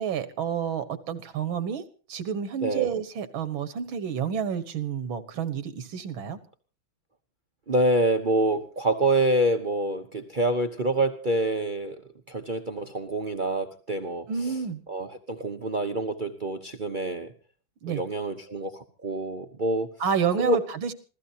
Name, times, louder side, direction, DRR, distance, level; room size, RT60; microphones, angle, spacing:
voice 1, 0.0-1.8 2.1-6.4 14.3-14.8 17.8-18.0 20.0-20.9, right 7 dB, 80° right, 12 dB, 2.1 m, -29 dB
voice 2, 7.7-12.0 12.3-14.5 14.9-17.3 17.9-19.9 20.4-20.6, right 1 dB, 45° right, 6 dB, 0.6 m, -26 dB
26.5 x 16.0 x 2.8 m, 0.37 s
omnidirectional pair, 2.2 m